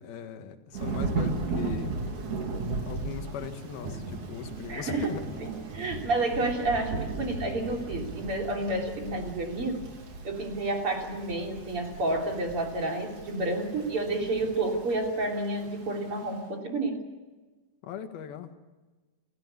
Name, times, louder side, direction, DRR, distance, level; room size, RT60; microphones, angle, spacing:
voice 1, 0.0-2.0 2.8-5.2 17.8-18.6, left 8 dB, 75° left, 7 dB, 3.3 m, -39 dB
Thunder / Rain, 0.7-16.3, right 3 dB, 55° right, 4.0 m, -36 dB
voice 2, 4.7-5.1 5.7-9.8 10.2-17.0, right 2 dB, 35° right, 2 dB, 3.7 m, -30 dB
29.0 x 14.0 x 8.1 m, 1.3 s
omnidirectional pair, 4.5 m